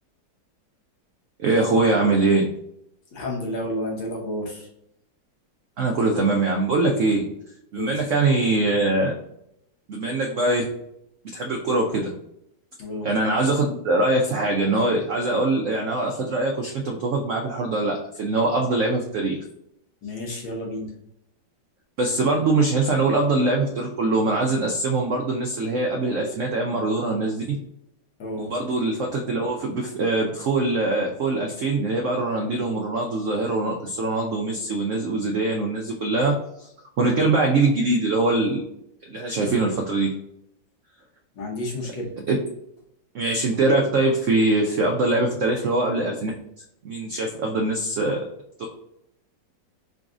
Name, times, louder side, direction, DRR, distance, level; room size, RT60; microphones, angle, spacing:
voice 1, 1.4-2.5 5.8-7.2 7.7-9.1 9.9-10.7 11.3-12.1 13.0-19.4 22.0-27.6 28.4-36.7 37.0-38.6 39.1-40.1 42.3-42.4 43.1-46.3 46.8-48.2, right 2 dB, 85° right, 1 dB, 0.6 m, -23 dB
voice 2, 3.1-4.7 7.7-8.0 12.8-13.1 20.0-20.9 28.2-28.5 39.4-39.5 41.4-42.1, left 1 dB, 90° left, -1 dB, 1.8 m, -31 dB
3.9 x 2.5 x 3.5 m, 0.78 s
omnidirectional pair, 1.9 m